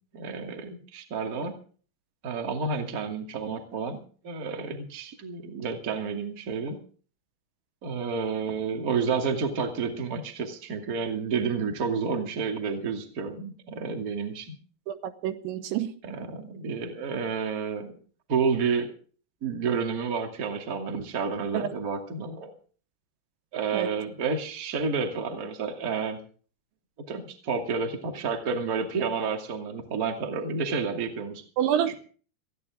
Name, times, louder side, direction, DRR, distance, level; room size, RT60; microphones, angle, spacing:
voice 1, 0.1-1.5 2.2-4.0 4.2-6.8 7.8-14.5 16.0-18.0 18.3-18.9 19.4-22.5 23.5-26.2 27.1-31.4 31.9-32.0, right 5 dB, 30° right, 1.7 m, -30 dB
voice 2, 14.9-15.9 21.5-21.7 23.7-23.9 31.6-31.9, right 10 dB, 80° right, 3.2 m, -28 dB
20.0 x 15.0 x 3.6 m
omnidirectional pair, 5.4 m